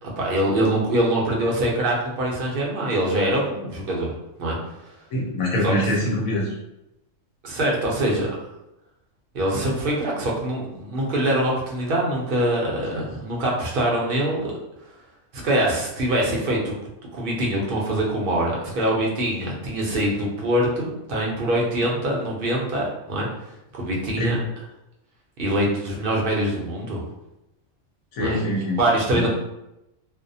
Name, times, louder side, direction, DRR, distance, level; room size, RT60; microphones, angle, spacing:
voice 1, 0.0-4.1 4.4-4.6 5.6-5.7 7.4-8.4 9.3-14.6 15.4-16.8 17.0-23.3 23.7-24.4 25.4-27.0 28.2-28.4 28.8-29.3, right 1 dB, 55° right, -2 dB, 0.7 m, -24 dB
voice 2, 5.1-6.5 12.9-13.0 24.2-24.4 28.1-28.8 29.1-29.3, equal, 85° left, -3 dB, 1.2 m, -24 dB
2.6 x 2.0 x 2.6 m, 0.90 s
omnidirectional pair, 1.4 m